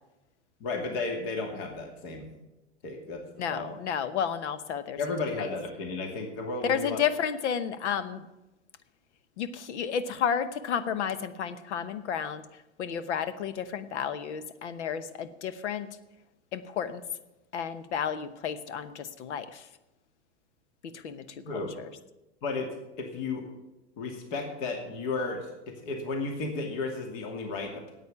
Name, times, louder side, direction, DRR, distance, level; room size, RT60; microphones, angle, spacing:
voice 1, 0.6-2.3 2.8-3.2 3.5-3.7 5.0-7.0 21.4-21.7 22.4-22.7 23.0-23.4 24.0-27.8, left 3 dB, 55° left, 3 dB, 2.6 m, -33 dB
voice 2, 3.4-5.0 5.4-5.5 6.6-8.2 9.4-12.4 12.8-15.9 16.5-17.0 17.5-19.7 20.8-21.9, left 8 dB, 80° left, 13 dB, 1.1 m, -32 dB
9.2 x 8.6 x 8.6 m, 1.0 s
hypercardioid pair, 120°, 35 cm